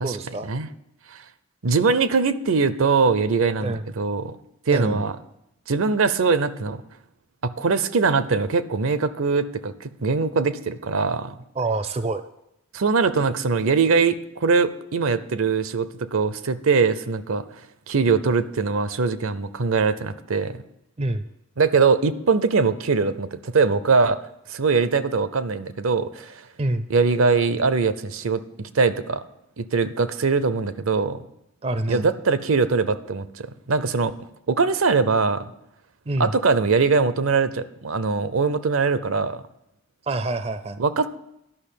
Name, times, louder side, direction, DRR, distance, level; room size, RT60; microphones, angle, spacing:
voice 1, 0.0-0.5 3.6-3.8 4.7-5.0 11.6-12.2 21.0-21.3 26.6-26.9 31.6-32.1 36.1-36.3 40.0-40.8, right 2 dB, 30° right, 11 dB, 0.4 m, -26 dB
voice 2, 1.6-4.4 4.7-5.2 5.7-6.8 7.4-11.4 12.7-17.4 17.9-20.6 21.6-24.2 24.5-26.4 26.9-29.2 29.6-31.2 31.9-34.1 34.5-35.5 36.2-39.4 40.8-41.2, right 4 dB, 75° right, 14 dB, 0.6 m, -22 dB
11.0 x 5.9 x 8.4 m, 0.82 s
head